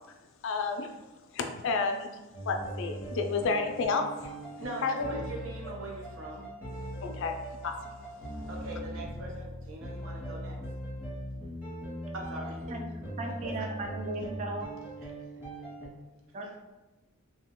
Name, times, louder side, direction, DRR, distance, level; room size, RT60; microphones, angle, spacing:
voice 1, 0.4-0.9 1.3-2.1 2.4-4.3 4.8-5.2 7.0-8.5, left 4 dB, 60° left, 5 dB, 0.3 m, -31 dB
sound 1, 2.3-15.9, right 1 dB, 10° right, 0.7 m, -40 dB
voice 2, 4.6-6.5 8.5-10.6 12.1-12.6 13.2-13.7 15.3-15.4 15.8-15.9, right 1 dB, 60° right, -1 dB, 0.7 m, -41 dB
voice 3, 13.2-14.7 16.3-16.6, right 2 dB, 30° right, 2 dB, 0.3 m, -36 dB
2.8 x 2.1 x 3.5 m, 1.1 s
head